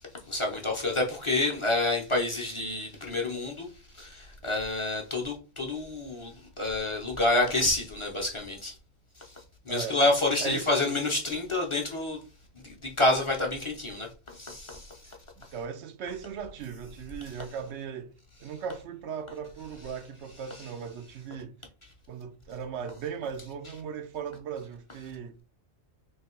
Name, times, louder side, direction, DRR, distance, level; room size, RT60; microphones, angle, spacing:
voice 1, 0.3-8.8 9.2-12.2 12.6-15.5 20.5-20.6, left 2 dB, 30° left, 0.7 m, -29 dB
voice 2, 9.7-10.0 10.4-10.7 15.4-18.1 18.4-21.6 22.1-25.4, right 7 dB, 80° right, 0.9 m, -38 dB
3.2 x 2.9 x 4.3 m
omnidirectional pair, 1.1 m